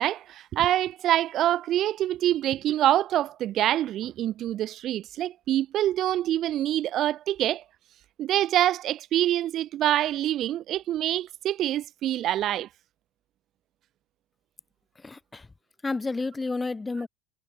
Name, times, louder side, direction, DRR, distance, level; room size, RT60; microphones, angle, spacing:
voice 1, 0.0-7.6 8.2-12.7, right 12 dB, 50° right, 2.1 m, -25 dB
voice 2, 15.0-15.5 15.8-17.1, left 3 dB, 15° left, 2.0 m, -30 dB
hypercardioid pair, 85°, 0 cm